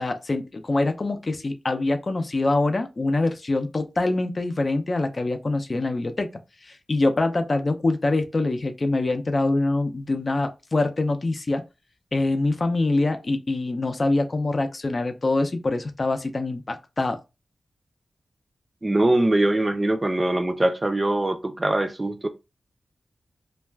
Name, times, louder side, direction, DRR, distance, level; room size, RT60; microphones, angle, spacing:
voice 1, 0.0-6.3 6.6-11.6 12.1-17.2, left 2 dB, 45° left, 0.5 m, -24 dB
voice 2, 18.8-22.3, right 1 dB, 25° right, 0.5 m, -22 dB
2.3 x 2.2 x 3.2 m
cardioid pair, 65°, 0 cm